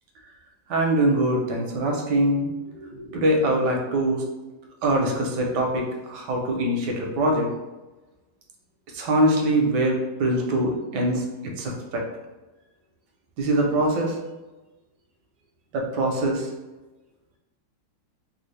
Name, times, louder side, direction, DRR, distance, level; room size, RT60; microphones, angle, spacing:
voice 1, 0.7-2.5 2.8-4.2 4.8-7.5 8.9-12.0 13.4-14.2 15.7-16.5, right 1 dB, 70° right, 0 dB, 1.1 m, -23 dB
3.4 x 2.3 x 3.1 m, 1.1 s
omnidirectional pair, 2.2 m